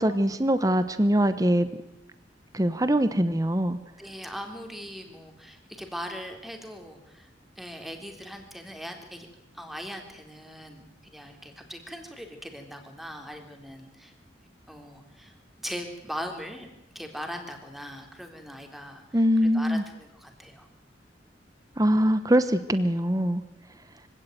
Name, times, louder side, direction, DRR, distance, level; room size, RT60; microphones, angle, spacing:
voice 1, 0.0-1.7 2.5-3.8 19.1-19.8 21.8-23.4, equal, 20° right, 12 dB, 1.0 m, -23 dB
voice 2, 4.0-7.3 7.6-9.3 9.5-14.1 14.7-15.3 15.6-16.7 16.9-19.2 19.5-20.7, equal, ahead, 4 dB, 3.5 m, -40 dB
25.0 x 17.0 x 9.3 m, 0.88 s
head